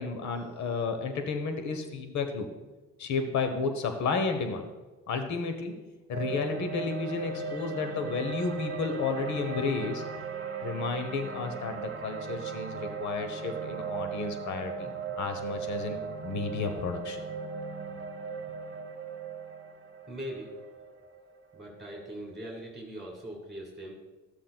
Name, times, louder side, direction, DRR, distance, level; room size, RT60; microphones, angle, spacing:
voice 1, 0.0-2.5 3.0-4.6 5.1-5.7 6.1-10.0 10.6-14.9 15.2-17.2, left 4 dB, 70° left, 6 dB, 1.0 m, -32 dB
sound 1, 6.1-22.4, right 6 dB, 40° right, 1.1 m, -38 dB
voice 2, 20.1-21.0 21.5-24.0, equal, ahead, -2 dB, 2.1 m, -41 dB
13.5 x 7.5 x 2.3 m, 1.2 s
cardioid pair, 90°, 30 cm